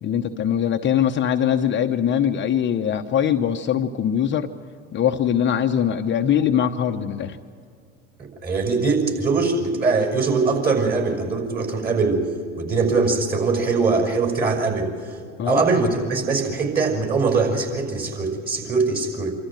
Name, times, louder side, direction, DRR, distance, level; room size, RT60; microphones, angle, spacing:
voice 1, 0.0-4.5 4.9-7.4 15.4-15.6, left 9 dB, 35° left, 5 dB, 0.9 m, -22 dB
voice 2, 8.2-12.2 12.6-15.1 15.4-19.3, right 4 dB, 25° right, 3 dB, 5.9 m, -22 dB
26.0 x 14.0 x 9.0 m, 2.3 s
hypercardioid pair, 90°, 34 cm